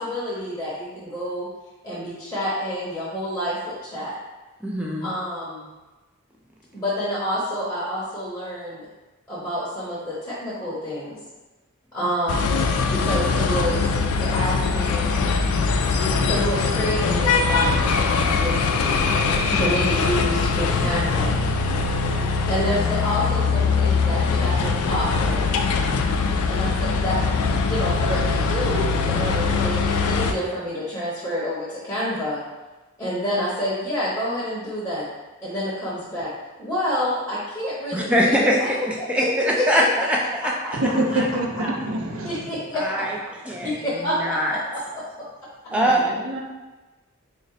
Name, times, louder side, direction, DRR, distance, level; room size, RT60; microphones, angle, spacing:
voice 1, 0.0-1.5 1.8-4.1 5.0-5.7 6.7-8.9 9.3-11.2 11.9-12.6 12.9-13.9 14.2-15.2 16.0-18.0 18.3-19.1 19.6-21.4 22.5-25.6 26.5-32.4 33.0-35.1 35.4-36.3 36.6-38.7 39.2-39.7 42.2-43.0 43.6-45.2, equal, 10° left, -9 dB, 0.8 m, -28 dB
voice 2, 4.6-5.1 12.0-12.1 19.5-19.8 37.9-40.2 40.4-40.5 41.1-41.3 41.6-41.8 42.7-43.2 43.5-44.6 45.7-46.1, equal, 5° right, -2 dB, 0.4 m, -23 dB
sound 1, 12.3-30.3, left 4 dB, 90° left, 0.4 m, -22 dB
voice 3, 40.7-42.5 45.7-46.4, right 1 dB, 70° right, 1 dB, 0.5 m, -26 dB
3.7 x 2.1 x 4.1 m, 1.2 s
head